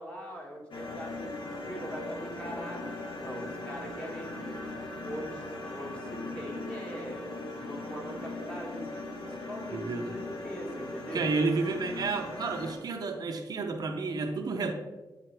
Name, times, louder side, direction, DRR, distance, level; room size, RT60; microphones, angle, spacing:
voice 1, 0.0-4.6 5.0-7.2 7.6-11.3, equal, 15° left, -2 dB, 1.4 m, -41 dB
sound 1, 0.7-12.7, left 2 dB, 80° left, 1.2 m, -39 dB
voice 2, 9.7-10.1 11.1-14.7, right 4 dB, 55° right, 4 dB, 0.6 m, -31 dB
8.6 x 4.0 x 3.3 m, 1.2 s
wide cardioid pair, 140°, 8 cm